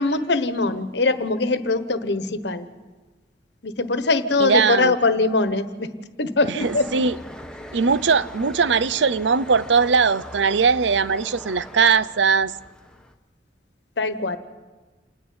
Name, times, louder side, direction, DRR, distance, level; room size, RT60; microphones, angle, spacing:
voice 1, 0.0-2.7 3.6-5.9 6.2-6.9 7.1-7.2 14.0-14.4, left 3 dB, 70° left, 1.2 m, -22 dB
voice 2, 4.4-4.9 6.5-7.2 7.7-12.5, right 5 dB, 85° right, 0.6 m, -20 dB
sound 1, 6.6-13.1, left 1 dB, 5° left, 1.2 m, -40 dB
28.0 x 10.0 x 9.7 m
head